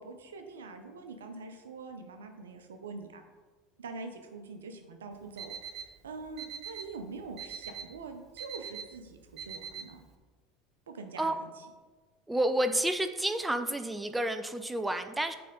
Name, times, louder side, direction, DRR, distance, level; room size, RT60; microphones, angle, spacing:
voice 1, 0.0-3.2 3.8-10.0 10.9-11.6, right 4 dB, 85° right, 6 dB, 0.7 m, -44 dB
Alarm, 5.1-10.1, right 7 dB, 45° right, 0.7 m, -44 dB
voice 2, 12.3-15.3, right 1 dB, 10° right, 8 dB, 0.4 m, -30 dB
8.3 x 3.4 x 3.8 m, 1.3 s
hypercardioid pair, 80°, 0 cm